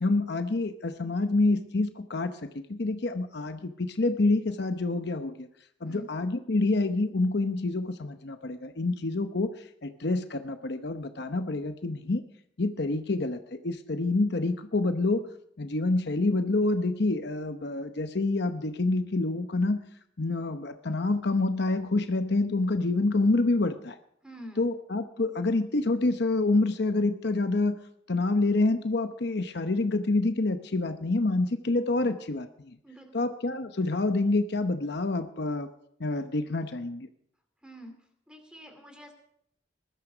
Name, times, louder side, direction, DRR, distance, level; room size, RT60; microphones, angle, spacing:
voice 1, 0.0-5.5 5.8-12.2 12.6-15.3 15.6-19.8 20.2-24.0 24.6-27.8 28.1-32.8 33.1-35.7 36.0-37.1, left 2 dB, 60° left, 8 dB, 0.8 m, -27 dB
voice 2, 24.2-24.7 32.8-33.3 37.6-38.0 38.3-39.1, equal, 5° right, 6 dB, 2.5 m, -46 dB
20.5 x 12.5 x 5.0 m, 0.70 s
head